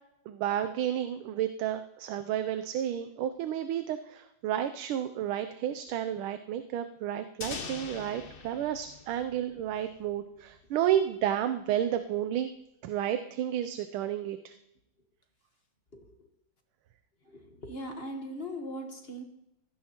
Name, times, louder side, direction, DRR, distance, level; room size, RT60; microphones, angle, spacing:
voice 1, 0.3-12.5 12.8-14.5, right 10 dB, 85° right, 9 dB, 1.5 m, -31 dB
sound 1, 7.4-10.2, left 5 dB, 50° left, 0.6 m, -43 dB
voice 2, 15.9-16.3 17.2-19.3, equal, 35° left, 4 dB, 1.3 m, -40 dB
16.0 x 15.0 x 2.9 m, 0.85 s
omnidirectional pair, 2.2 m